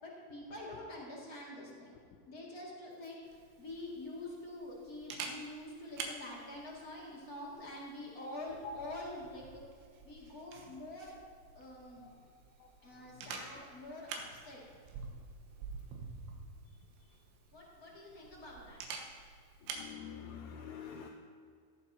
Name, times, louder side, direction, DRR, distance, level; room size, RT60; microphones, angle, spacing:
voice 1, 0.0-2.0 2.2-9.6 10.0-11.1 11.5-12.0 12.8-14.6 17.5-18.8, left 1 dB, 35° left, -5 dB, 1.4 m, -46 dB
Camera, 3.2-19.9, right 5 dB, 85° right, 3.5 m, -49 dB
voice 2, 19.7-21.1, left 6 dB, 90° left, 0 dB, 3.3 m, -46 dB
16.5 x 14.0 x 2.8 m, 2.1 s
omnidirectional pair, 5.5 m